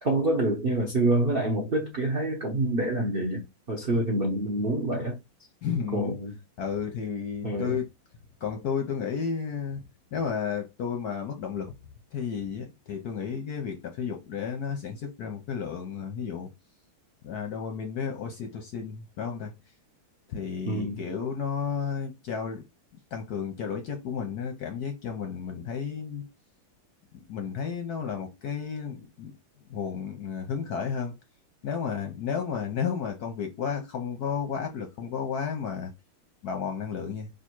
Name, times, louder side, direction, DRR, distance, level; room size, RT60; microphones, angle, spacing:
voice 1, 0.0-5.2 5.9-6.3 7.4-7.7 20.7-21.0, right 1 dB, 75° right, 0.5 m, -27 dB
voice 2, 5.6-6.2 6.6-7.9 8.4-9.8 10.1-11.7 12.1-16.5 17.2-19.5 20.3-22.6 23.1-26.3 27.3-29.3 29.7-31.2 31.6-35.9 36.4-37.3, left 6 dB, 65° left, 1.0 m, -32 dB
3.5 x 2.6 x 4.5 m
omnidirectional pair, 2.4 m